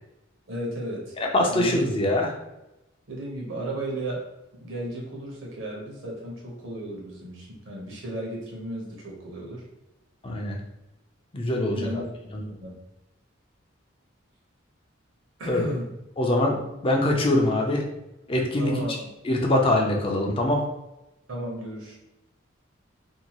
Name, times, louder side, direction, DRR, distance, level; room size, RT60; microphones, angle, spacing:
voice 1, 0.5-1.2 1.5-1.9 3.1-4.3 4.5-9.6 11.7-12.1 12.6-12.8 15.4-15.9 18.6-19.1 21.3-22.0, right 1 dB, 65° right, -2 dB, 0.9 m, -34 dB
voice 2, 1.3-2.3 10.2-10.6 11.3-12.0 12.3-12.4 15.5-15.6 16.2-16.6 16.8-17.8 18.3-18.7 19.3-20.6, left 1 dB, 25° left, 1 dB, 0.4 m, -23 dB
2.7 x 2.2 x 2.9 m, 0.94 s
head